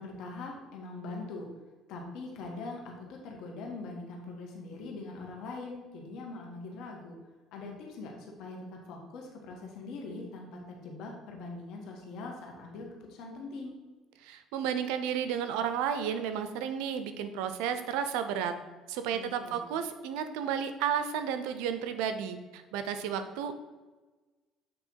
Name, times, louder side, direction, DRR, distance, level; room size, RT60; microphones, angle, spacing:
voice 1, 0.0-1.5 1.9-7.2 7.5-13.7 19.1-19.6, left 3 dB, 70° left, 1 dB, 1.6 m, -42 dB
voice 2, 14.2-18.5 18.9-23.5, right 8 dB, 90° right, 9 dB, 0.6 m, -32 dB
7.9 x 3.4 x 4.6 m, 1.3 s
cardioid pair, 110°, 0 cm